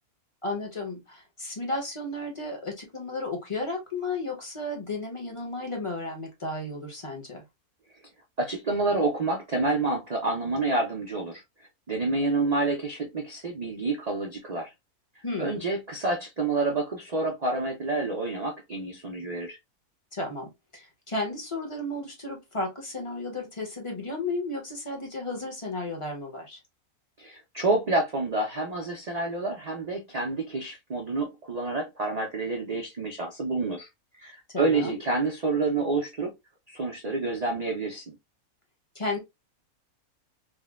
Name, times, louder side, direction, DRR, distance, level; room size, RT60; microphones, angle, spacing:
voice 1, 0.4-7.4 15.2-15.6 20.1-26.6 34.5-35.0 38.9-39.2, left 2 dB, 25° left, 0.8 m, -33 dB
voice 2, 8.4-11.4 11.9-14.7 15.4-19.6 27.2-33.9 34.2-36.3 36.7-38.2, right 3 dB, 45° right, 0.5 m, -28 dB
3.6 x 2.1 x 2.3 m
omnidirectional pair, 1.6 m